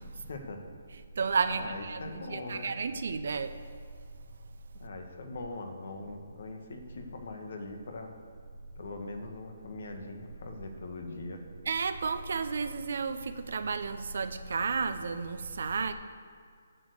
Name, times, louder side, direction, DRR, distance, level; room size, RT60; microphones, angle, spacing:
voice 1, 0.3-0.6 1.5-2.7 4.7-8.1 8.8-11.4, left 2 dB, 65° left, 4 dB, 1.5 m, -41 dB
voice 2, 1.2-3.5 11.7-15.9, right 5 dB, 65° right, 9 dB, 0.7 m, -32 dB
8.6 x 6.9 x 6.6 m, 2.1 s
hypercardioid pair, 155°, 0 cm